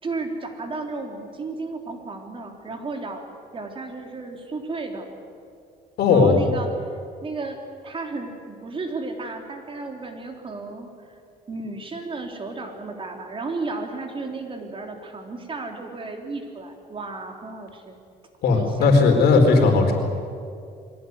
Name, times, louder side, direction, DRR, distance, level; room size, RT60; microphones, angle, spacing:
voice 1, 0.0-3.2 3.5-5.1 6.1-6.9 7.2-7.6 7.8-11.2 11.5-18.0 18.5-19.0, right 3 dB, 30° right, 3 dB, 3.5 m, -33 dB
voice 2, 6.0-6.4 18.4-19.9, left 4 dB, 70° left, 3 dB, 4.3 m, -16 dB
23.0 x 17.0 x 9.5 m, 2.3 s
cardioid pair, 110°, 17 cm